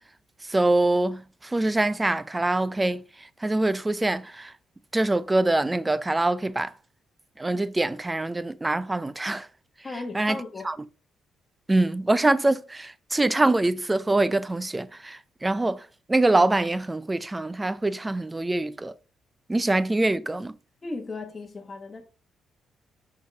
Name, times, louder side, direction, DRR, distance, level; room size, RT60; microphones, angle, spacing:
voice 1, 0.5-4.5 4.9-6.7 7.4-9.5 10.1-10.4 10.6-10.8 11.7-19.0 19.5-20.5, right 2 dB, 15° right, 0.5 m, -24 dB
voice 2, 9.8-10.7 20.8-22.0, left 3 dB, 25° left, 1.3 m, -36 dB
5.6 x 4.8 x 4.6 m
cardioid pair, 90°, 0 cm